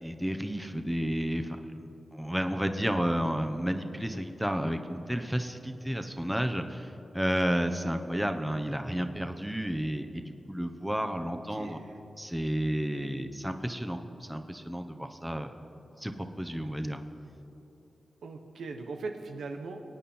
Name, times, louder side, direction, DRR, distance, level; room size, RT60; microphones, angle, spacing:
voice 1, 0.0-1.6 2.1-11.8 12.2-15.5 16.0-17.0, equal, 5° right, 6 dB, 1.1 m, -31 dB
voice 2, 11.2-11.9 18.2-19.8, right 3 dB, 85° right, 4 dB, 0.9 m, -40 dB
22.5 x 9.1 x 4.4 m, 3.0 s
cardioid pair, 50°, 0 cm